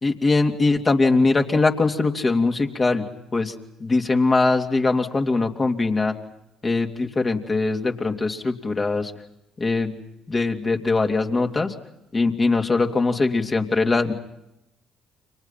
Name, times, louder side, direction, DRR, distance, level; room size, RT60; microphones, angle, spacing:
voice 1, 0.0-3.0 3.3-3.5 3.8-6.1 6.6-9.1 9.6-10.0 10.3-11.7 12.1-14.1, left 3 dB, 30° left, 4 dB, 3.0 m, -21 dB
29.5 x 25.5 x 5.8 m, 0.86 s
hypercardioid pair, 55°, 0 cm